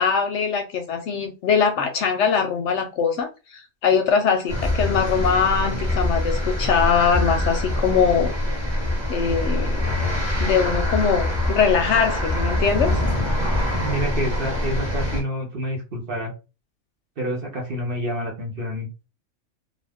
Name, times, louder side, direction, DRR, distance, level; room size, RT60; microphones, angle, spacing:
voice 1, 0.0-3.3 3.5-8.3 9.1-9.9 10.4-12.9, left 6 dB, 65° left, 5 dB, 0.8 m, -22 dB
sound 1, 4.5-15.2, left 1 dB, 20° right, 1.0 m, -24 dB
voice 2, 13.8-16.3 17.2-18.9, equal, 50° right, 0 dB, 0.9 m, -28 dB
2.4 x 2.4 x 3.4 m, 0.30 s
omnidirectional pair, 1.4 m